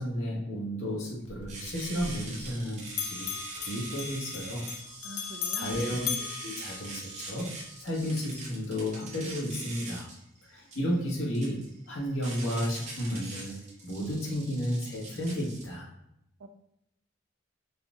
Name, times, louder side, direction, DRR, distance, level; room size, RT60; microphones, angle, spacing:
voice 1, 0.0-3.3 3.6-4.6 5.0-5.2 5.5-6.0 6.4-7.5 7.8-10.1 10.5-13.5 13.8-15.9, equal, 85° left, -4 dB, 1.5 m, -32 dB
Bell, 1.2-2.6 2.9-7.4, left 8 dB, 70° left, 0.5 m, -38 dB
sound 1, 1.5-15.6, right 2 dB, 35° right, 1.0 m, -43 dB
voice 2, 5.0-5.8 16.4-16.5, right 2 dB, 70° right, 8 dB, 0.4 m, -44 dB
4.2 x 2.6 x 3.6 m, 0.80 s
head